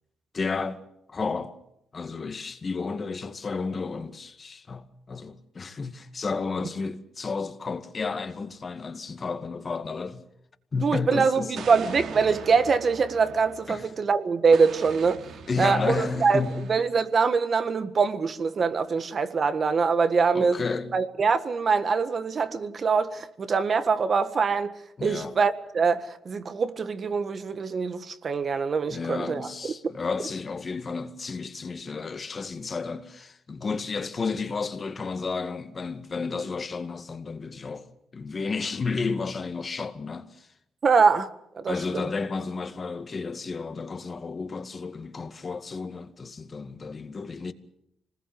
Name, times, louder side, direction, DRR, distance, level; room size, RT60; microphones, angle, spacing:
voice 1, 0.3-0.8 1.1-1.6 1.9-10.2 10.7-11.7 13.7-13.9 15.5-16.7 20.3-21.0 25.0-25.4 28.9-37.9 38.1-40.5 41.7-47.5, left 4 dB, 35° left, 2.1 m, -32 dB
voice 2, 10.8-15.2 15.6-16.4 16.7-20.6 20.9-24.7 25.0-29.5 40.8-41.3 41.5-42.1, right 5 dB, 45° right, 1.7 m, -24 dB
Explosion, 11.6-14.0 14.5-17.1, right 6 dB, 70° right, 2.9 m, -41 dB
26.0 x 20.0 x 7.9 m
cardioid pair, 90°, 0 cm